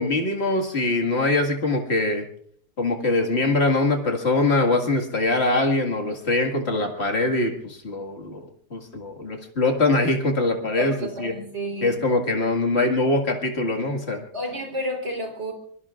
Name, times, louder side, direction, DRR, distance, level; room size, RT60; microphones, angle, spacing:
voice 1, 0.0-2.3 2.8-8.4 8.7-11.3 11.8-14.2, left 2 dB, 40° left, 2 dB, 2.2 m, -23 dB
voice 2, 10.8-12.0 14.3-15.5, equal, 45° right, 2 dB, 4.4 m, -30 dB
25.5 x 22.5 x 2.5 m, 0.62 s
omnidirectional pair, 1.7 m